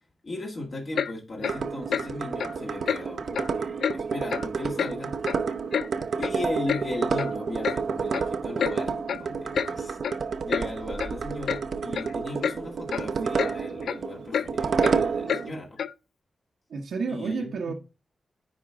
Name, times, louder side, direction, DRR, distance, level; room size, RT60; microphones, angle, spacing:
voice 1, 0.2-5.1 6.1-10.0 10.4-15.8 17.1-17.7, left 2 dB, 45° left, 1.9 m, -37 dB
Clock, 0.9-1.1 1.4-1.6 1.9-2.1 2.4-2.5 2.9-3.0 3.3-3.5 3.8-4.0 4.3-4.5 4.8-4.9 5.2-5.9 6.2-6.3 6.7-6.8 7.2-7.3 7.6-7.8 8.1-8.3 8.6-8.7 9.1-9.2 9.5-9.7 10.0-10.2 10.5-10.7 11.0-11.1 11.5-11.6 11.9-12.1 12.4-12.6 12.9-13.0 13.4-13.5 13.8-14.0 14.3-14.5 14.8-14.9 15.3-15.4 15.8-15.9, left 7 dB, 80° left, 0.4 m, -28 dB
sound 1, 1.4-15.5, right 5 dB, 65° right, 0.6 m, -30 dB
voice 2, 16.7-17.7, right 5 dB, 85° right, 1.0 m, -31 dB
9.9 x 4.4 x 3.6 m
wide cardioid pair, 120°, 0 cm